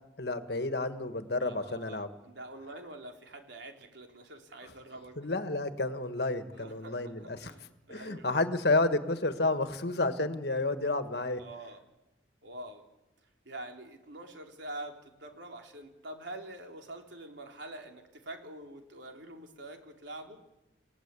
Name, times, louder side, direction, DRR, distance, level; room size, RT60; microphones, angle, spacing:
voice 1, 0.2-2.1 5.2-7.5 7.9-11.4, left 2 dB, 60° left, 10 dB, 1.6 m, -30 dB
voice 2, 1.4-5.2 6.5-8.4 11.4-11.8 12.4-12.8 13.5-20.4, right 1 dB, 70° right, 3 dB, 3.5 m, -46 dB
29.5 x 18.0 x 8.4 m, 0.95 s
head